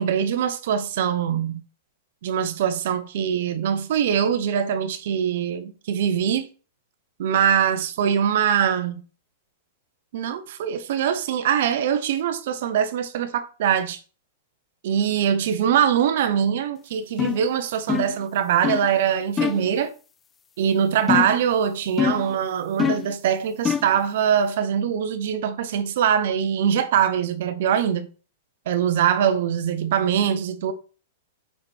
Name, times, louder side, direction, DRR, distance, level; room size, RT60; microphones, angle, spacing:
voice 1, 0.0-1.6 2.2-6.5 7.2-8.9 10.1-14.0 14.8-19.9 20.6-28.1 28.7-30.7, right 8 dB, 60° right, 1.0 m, -23 dB
sound 1, 17.2-17.5 17.9-18.2 18.6-18.9 19.4-19.7 21.1-21.5 22.0-22.3 22.8-23.1 23.6-24.0, left 8 dB, 15° left, 0.3 m, -24 dB
5.7 x 5.0 x 4.5 m
supercardioid pair, 155°, 0 cm